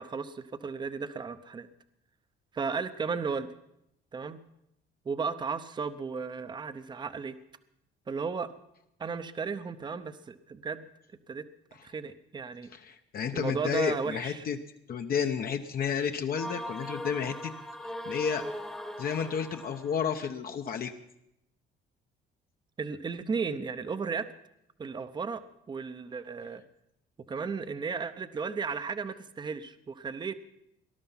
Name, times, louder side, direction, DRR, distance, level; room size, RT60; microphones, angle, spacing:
voice 1, 0.0-1.7 2.5-3.5 4.1-4.4 5.0-7.4 8.1-8.5 9.0-10.9 11.3-11.5 11.8-12.7 13.3-14.5 22.8-24.3 24.8-26.6 27.3-30.4, right 5 dB, 20° right, 12 dB, 0.7 m, -34 dB
voice 2, 12.7-14.6 14.9-17.5 18.0-18.4 19.0-20.9, left 7 dB, 50° left, 6 dB, 0.9 m, -31 dB
sound 1, 16.3-20.1, equal, 5° left, 1.1 m, -40 dB
19.0 x 12.0 x 5.7 m, 0.80 s
cardioid pair, 140°, 20 cm